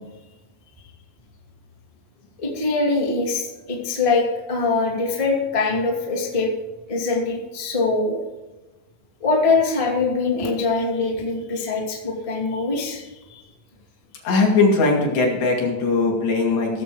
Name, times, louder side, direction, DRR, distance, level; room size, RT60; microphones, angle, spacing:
voice 1, 2.4-6.5 6.9-8.2 9.2-13.4, left 3 dB, 20° left, -2 dB, 0.8 m, -23 dB
voice 2, 14.2-16.8, left 3 dB, 60° left, -2 dB, 4.4 m, -19 dB
17.5 x 7.2 x 5.0 m, 1.1 s
omnidirectional pair, 5.8 m